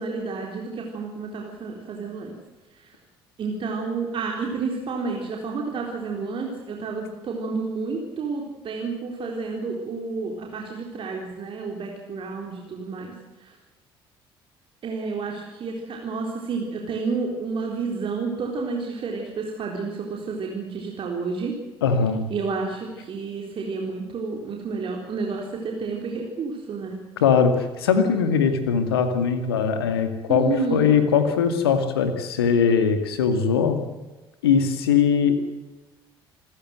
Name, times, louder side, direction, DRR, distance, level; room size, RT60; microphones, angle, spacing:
voice 1, 0.0-2.3 2.8-3.0 3.4-13.5 14.8-21.5 22.3-27.0 30.3-30.9, right 4 dB, 40° right, 0 dB, 4.0 m, -30 dB
voice 2, 21.8-22.2 27.2-33.8 34.4-35.4, left 6 dB, 75° left, 8 dB, 2.3 m, -21 dB
27.0 x 15.0 x 7.8 m, 1.1 s
figure-of-eight pair, 55°, 13 cm